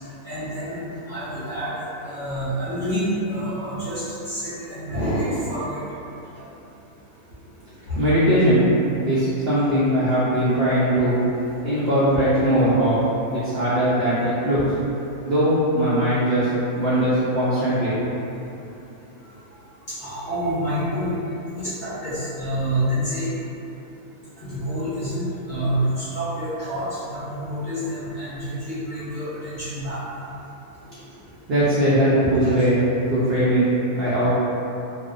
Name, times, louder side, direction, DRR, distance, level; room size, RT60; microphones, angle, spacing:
voice 1, 0.2-5.8 7.9-8.0 19.9-21.1 21.6-23.3 24.4-30.0 32.4-32.5, equal, 45° left, -14 dB, 0.6 m, -28 dB
voice 2, 7.9-8.6 9.0-11.2 11.6-13.0 13.3-14.6 15.2-16.5 16.8-18.0 31.5-33.7 33.9-34.3, right 1 dB, 75° right, -11 dB, 0.5 m, -20 dB
2.5 x 2.0 x 2.4 m, 2.9 s
omnidirectional pair, 1.6 m